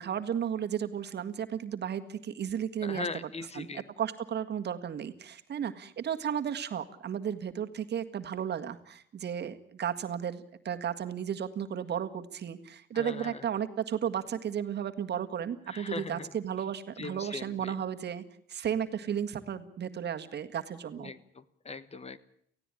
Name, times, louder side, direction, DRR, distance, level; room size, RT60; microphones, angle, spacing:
voice 1, 0.0-3.3 3.6-18.2 18.5-21.1, right 8 dB, 60° right, 8 dB, 1.8 m, -34 dB
voice 2, 2.8-3.8 12.9-13.4 15.7-16.3 17.0-17.7 21.0-22.2, left 3 dB, 30° left, 15 dB, 1.4 m, -40 dB
18.5 x 16.0 x 10.0 m, 0.66 s
cardioid pair, 90°, 20 cm